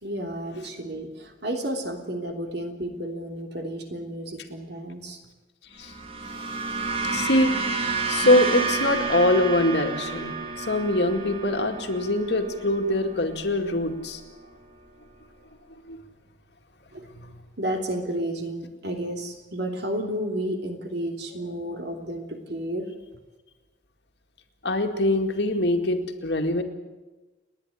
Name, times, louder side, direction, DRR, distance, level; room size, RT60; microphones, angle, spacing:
voice 1, 0.0-5.2 16.9-17.0 17.6-22.8, right 1 dB, 65° right, 4 dB, 3.3 m, -32 dB
sound 1, 5.8-14.3, right 4 dB, 35° right, 2.1 m, -31 dB
voice 2, 7.1-7.6 8.1-14.2 15.9-16.0 17.1-17.3 24.6-26.6, left 1 dB, 65° left, 5 dB, 2.2 m, -23 dB
30.0 x 10.5 x 10.0 m, 1.2 s
head